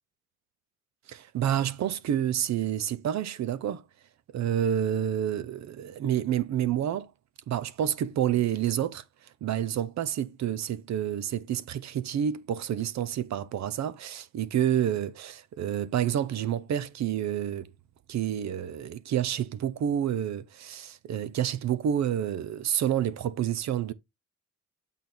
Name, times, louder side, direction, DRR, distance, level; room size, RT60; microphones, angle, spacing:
voice 1, 1.1-3.8 4.3-7.1 7.5-9.0 9.4-17.7 18.1-23.9, right 10 dB, 65° right, 0.7 m, -29 dB
8.4 x 3.5 x 4.3 m
cardioid pair, 90°, 30 cm